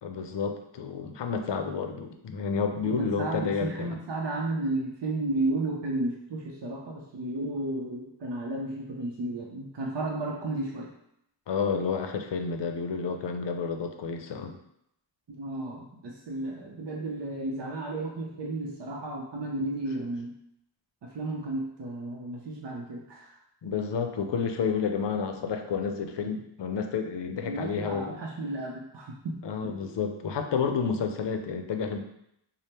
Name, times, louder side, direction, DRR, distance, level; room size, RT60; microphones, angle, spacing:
voice 1, 0.0-3.9 11.5-14.6 23.6-28.2 29.4-32.0, left 6 dB, 70° left, 5 dB, 0.5 m, -30 dB
voice 2, 2.8-10.9 15.3-20.3 21.0-23.4 27.4-29.8, right 2 dB, 70° right, -2 dB, 0.6 m, -33 dB
3.4 x 2.0 x 4.2 m, 0.77 s
wide cardioid pair, 45°, 44 cm